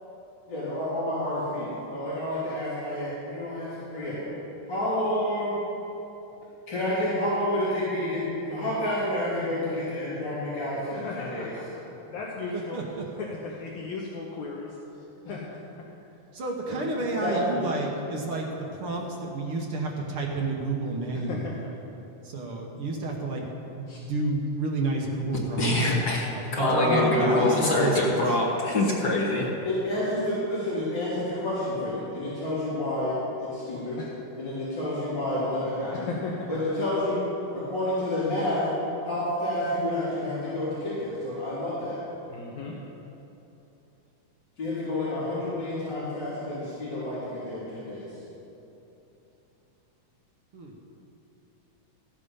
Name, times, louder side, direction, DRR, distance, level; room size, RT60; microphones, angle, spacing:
voice 1, 0.5-4.2 4.7-5.5 6.7-11.5 16.7-17.6 26.6-28.0 29.6-34.0 34.4-36.1 36.5-37.3 37.5-38.7 39.1-42.0 44.6-48.1, left 1 dB, 35° left, -14 dB, 3.8 m, -29 dB
voice 2, 10.9-11.6 12.1-12.8 13.2-15.6 21.1-21.7 23.9-24.1 34.0-34.1 35.9-36.5 42.3-42.7, left 4 dB, 70° left, -3 dB, 2.2 m, -36 dB
voice 3, 12.5-13.0 16.3-18.5 18.7-21.5 22.2-23.5 23.7-25.9 26.3-28.2 50.5-50.9, right 3 dB, 60° right, 0 dB, 1.6 m, -30 dB
voice 4, 25.6-29.5, left 2 dB, 55° left, -3 dB, 1.1 m, -25 dB
14.0 x 8.7 x 5.6 m, 3.0 s
omnidirectional pair, 3.6 m